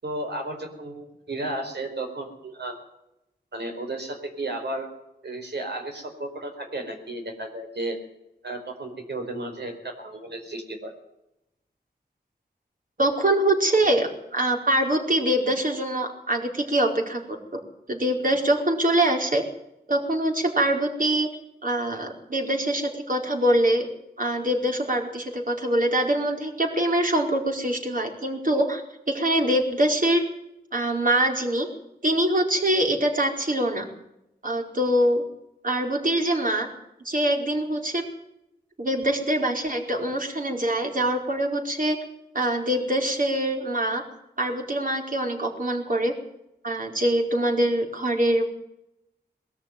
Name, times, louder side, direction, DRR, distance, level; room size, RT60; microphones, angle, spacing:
voice 1, 0.0-2.8 3.5-4.9 5.2-8.0 8.4-10.9, right 2 dB, 80° right, 3 dB, 4.7 m, -33 dB
voice 2, 13.0-17.6 17.9-19.4 19.9-21.3 21.6-23.9 24.2-28.8 29.1-30.2 30.7-31.7 32.0-33.9 34.4-35.2 35.6-36.7 37.0-38.0 38.8-42.0 42.3-44.0 44.4-46.1 46.6-48.4, right 1 dB, 50° right, 1 dB, 4.7 m, -24 dB
21.0 x 13.5 x 9.2 m, 0.86 s
wide cardioid pair, 60°, 17 cm